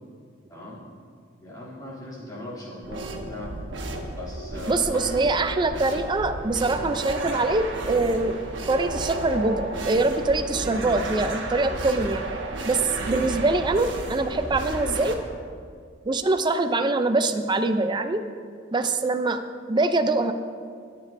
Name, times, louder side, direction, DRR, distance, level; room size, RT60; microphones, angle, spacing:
voice 1, 0.5-0.8 1.4-3.5 4.2-5.0 12.8-13.0, left 2 dB, 20° left, -8 dB, 2.9 m, -39 dB
sound 1, 2.8-15.2, right 2 dB, 70° right, 1.1 m, -33 dB
voice 2, 4.7-8.4 8.7-12.3 12.7-15.2 16.1-18.2 18.7-19.4 19.7-20.3, right 2 dB, 25° right, 8 dB, 0.4 m, -24 dB
20.0 x 7.3 x 2.6 m, 2.1 s
head